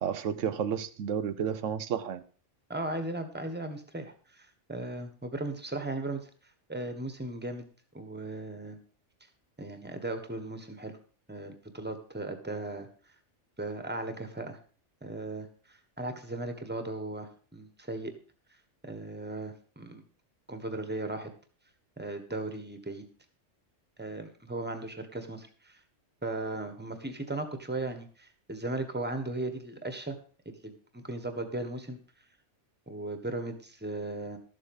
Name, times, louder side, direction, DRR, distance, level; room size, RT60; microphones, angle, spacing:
voice 1, 0.0-2.2, right 8 dB, 90° right, 1.1 m, -31 dB
voice 2, 2.7-6.3 6.7-7.7 7.9-8.8 9.6-11.0 11.3-12.9 13.6-14.6 15.0-18.1 18.8-20.0 20.5-21.3 22.0-23.1 24.0-25.8 26.2-30.2 30.4-32.0 32.9-34.4, right 2 dB, 10° right, 1.4 m, -37 dB
13.0 x 7.5 x 5.5 m
omnidirectional pair, 1.2 m